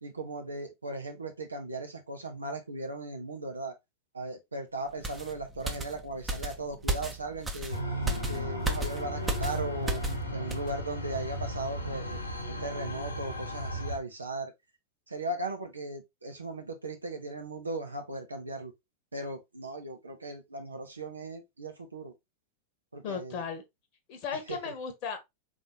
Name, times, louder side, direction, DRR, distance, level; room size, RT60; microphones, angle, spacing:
voice 1, 0.0-3.7 4.1-7.8 8.3-10.0 10.3-12.2 12.5-14.5 15.1-18.7 19.1-22.1 22.9-23.4, right 2 dB, 80° right, 1.2 m, -37 dB
sound 1, 5.0-10.2 10.5-10.7, right 2 dB, 15° right, 0.9 m, -34 dB
sound 2, 7.7-14.0, equal, 80° left, 1.3 m, -35 dB
voice 2, 23.0-23.6 24.1-25.2, left 6 dB, 40° left, 1.1 m, -36 dB
4.3 x 3.7 x 3.0 m
figure-of-eight pair, 90°, 0 cm